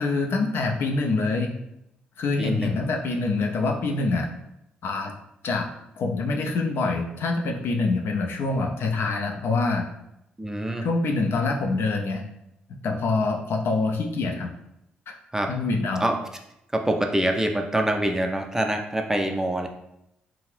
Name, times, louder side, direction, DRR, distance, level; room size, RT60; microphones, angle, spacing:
voice 1, 0.0-1.5 2.2-4.3 4.8-5.1 5.4-5.7 6.0-9.9 10.8-12.2 12.7-14.5 15.1-15.2 15.5-16.1, left 3 dB, 50° left, 3 dB, 0.4 m, -25 dB
voice 2, 2.4-2.8 10.4-10.9 15.3-15.5 16.0-16.2 16.7-19.7, right 1 dB, 10° right, 3 dB, 0.4 m, -25 dB
2.7 x 2.4 x 3.2 m, 0.82 s
figure-of-eight pair, 40°, 5 cm